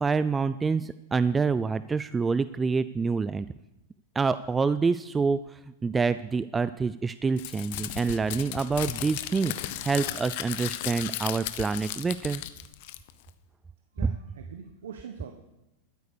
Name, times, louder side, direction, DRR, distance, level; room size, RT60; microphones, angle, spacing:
voice 1, 0.0-3.5 4.1-12.4, right 4 dB, 15° right, 14 dB, 0.4 m, -27 dB
Crumpling crinkling, 7.4-13.3, left 14 dB, 60° left, 0.9 m, -35 dB
voice 2, 13.9-15.3, right 7 dB, 90° right, 5 dB, 1.2 m, -42 dB
13.0 x 9.5 x 6.8 m, 0.97 s
supercardioid pair, 130°, 0 cm